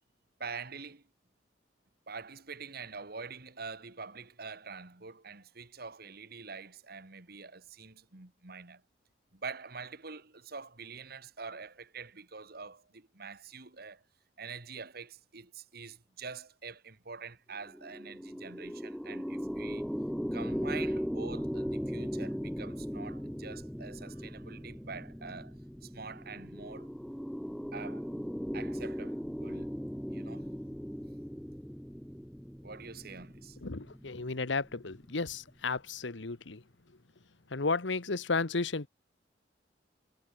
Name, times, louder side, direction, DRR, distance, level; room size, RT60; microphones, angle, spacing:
voice 1, 0.4-1.0 2.1-8.8 9.3-14.0 14.4-19.9 20.3-25.6 25.8-26.9 27.7-28.1 28.5-29.8 30.1-30.5 32.6-33.6, right 5 dB, 55° right, 2.0 m, -45 dB
sound 1, 17.6-35.1, equal, ahead, 0.9 m, -38 dB
voice 2, 33.6-36.6 37.5-38.9, left 3 dB, 80° left, 1.2 m, -33 dB
head